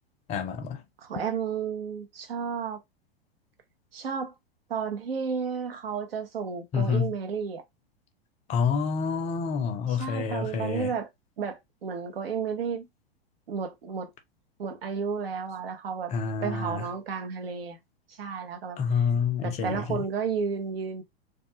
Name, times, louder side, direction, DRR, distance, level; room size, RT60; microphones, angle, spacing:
voice 1, 0.3-0.8 6.7-7.1 8.5-10.9 16.1-16.9 18.8-20.0, left 6 dB, 25° left, 0.5 m, -28 dB
voice 2, 1.0-2.8 3.9-4.3 4.7-7.6 9.9-11.1 11.4-12.8 13.5-14.1 14.6-16.1 16.4-17.8 18.2-18.8 19.4-21.0, right 6 dB, 70° right, 0.8 m, -32 dB
2.3 x 2.3 x 2.8 m
figure-of-eight pair, 100°, 31 cm